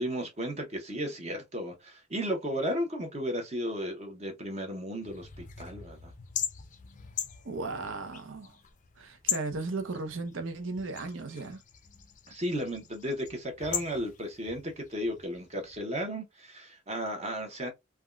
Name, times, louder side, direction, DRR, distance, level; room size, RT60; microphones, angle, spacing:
voice 1, 0.0-6.1 12.3-17.7, equal, 35° right, 0.7 m, -34 dB
sound 1, 5.0-15.8, left 8 dB, 40° left, 0.4 m, -40 dB
voice 2, 7.4-8.5 9.0-11.6, right 3 dB, 75° right, 0.7 m, -36 dB
3.4 x 2.2 x 2.3 m
head